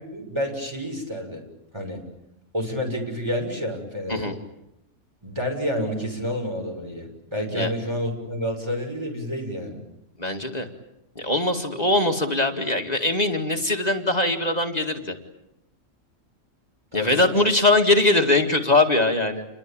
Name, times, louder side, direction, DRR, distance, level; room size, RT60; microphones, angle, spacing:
voice 1, 0.1-1.4 1.7-2.0 2.5-4.3 5.2-9.8 16.9-17.4, equal, 20° right, 2 dB, 6.4 m, -29 dB
voice 2, 10.2-10.7 11.2-15.2 16.9-19.5, left 2 dB, 30° left, 3 dB, 2.3 m, -21 dB
29.5 x 22.0 x 8.9 m, 0.86 s
omnidirectional pair, 1.4 m